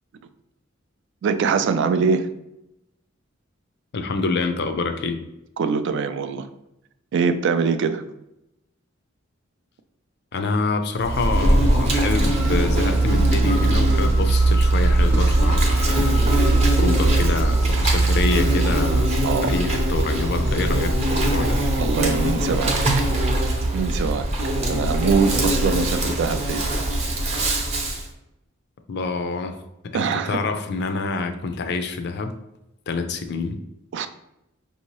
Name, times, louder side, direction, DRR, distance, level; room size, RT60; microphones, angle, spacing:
voice 1, 1.2-2.3 5.6-6.5 7.1-8.0 19.2-19.6 21.8-22.7 23.7-26.7 29.9-30.4 33.9-34.1, right 5 dB, 60° right, 10 dB, 0.3 m, -23 dB
voice 2, 3.9-5.2 10.3-16.2 16.7-21.6 28.9-29.6 29.8-32.3 32.9-33.6, left 3 dB, 55° left, 8 dB, 0.4 m, -27 dB
Insect, 11.0-28.0, right 1 dB, 35° right, 0.7 m, -20 dB
sound 1, 12.2-19.7, left 2 dB, 75° right, 0.8 m, -39 dB
5.3 x 2.7 x 3.0 m, 0.86 s
head